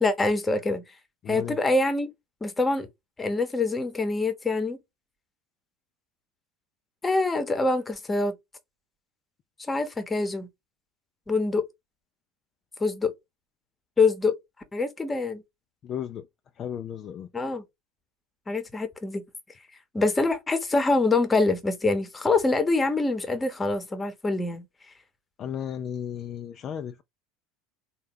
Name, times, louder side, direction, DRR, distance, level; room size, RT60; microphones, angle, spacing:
voice 1, 0.0-0.8 1.3-2.1 2.4-2.9 3.2-4.8 7.0-8.4 9.7-10.5 11.3-11.6 12.8-13.1 14.0-14.3 14.7-15.4 17.3-17.6 18.5-19.2 19.9-24.6, left 3 dB, 15° left, 0.9 m, -25 dB
voice 2, 1.2-1.6 15.8-16.3 16.6-17.3 25.4-27.0, left 9 dB, 40° left, 0.4 m, -34 dB
3.7 x 2.2 x 3.5 m
figure-of-eight pair, 75°, 0 cm